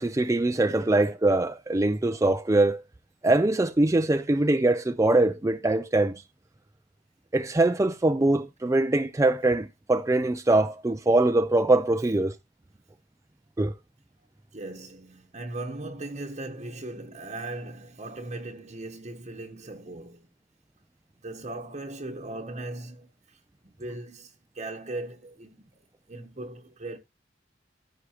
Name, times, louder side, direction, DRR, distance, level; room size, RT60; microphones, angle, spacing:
voice 1, 0.0-2.8 3.2-6.2 7.3-12.3 13.6-13.7, right 2 dB, 15° right, 0.4 m, -23 dB
voice 2, 14.5-20.3 21.2-23.4 23.8-25.6 26.1-27.0, right 2 dB, 35° right, 1.1 m, -38 dB
14.5 x 6.4 x 2.9 m
head